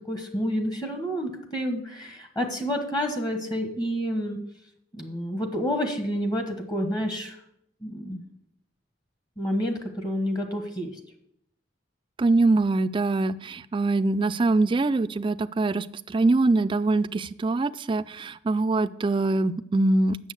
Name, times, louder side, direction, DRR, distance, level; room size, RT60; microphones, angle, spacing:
voice 1, 0.1-4.4 4.9-7.4 7.8-8.2 9.4-10.9, equal, 20° left, 5 dB, 1.2 m, -29 dB
voice 2, 12.2-20.2, right 2 dB, 25° right, 14 dB, 0.3 m, -23 dB
8.1 x 6.8 x 7.7 m, 0.73 s
head